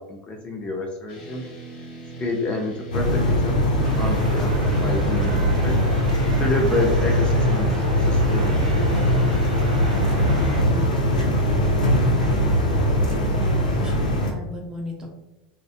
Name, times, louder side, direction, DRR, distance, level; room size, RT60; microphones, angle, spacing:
voice 1, 0.0-1.5 2.2-5.7 6.4-8.7, left 2 dB, 25° left, 1 dB, 0.4 m, -29 dB
sound 1, 1.1-6.5, right 4 dB, 55° left, 0.9 m, -39 dB
sound 2, 2.9-14.3, equal, 90° left, 0.5 m, -21 dB
sound 3, 3.8-10.6, right 2 dB, 80° right, 0.5 m, -35 dB
voice 2, 12.9-15.1, equal, 20° right, 0 dB, 0.6 m, -37 dB
2.5 x 2.1 x 2.4 m, 0.96 s
hypercardioid pair, 85°, 4 cm